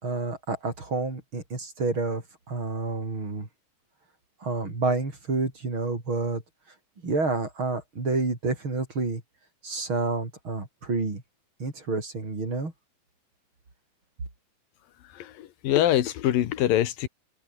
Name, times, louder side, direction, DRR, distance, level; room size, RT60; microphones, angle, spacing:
voice 1, 0.0-2.2 2.5-3.5 4.4-6.4 7.0-9.2 9.6-11.2 11.6-12.7, right 3 dB, 35° right, 5.9 m, -29 dB
voice 2, 15.2-17.1, left 12 dB, 85° left, 3.2 m, -24 dB
open air
omnidirectional pair, 3.9 m